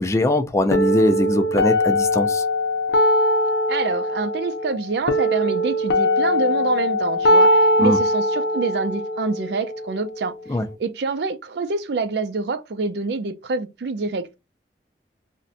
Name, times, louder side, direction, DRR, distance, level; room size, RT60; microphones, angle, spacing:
voice 1, 0.0-2.4 7.8-8.0 10.5-10.7, left 1 dB, 15° left, 0.3 m, -21 dB
sound 1, 0.7-10.7, left 1 dB, 80° left, 0.5 m, -21 dB
voice 2, 3.7-10.3 10.8-14.4, right 4 dB, 70° right, 0.4 m, -26 dB
2.5 x 2.1 x 3.8 m
head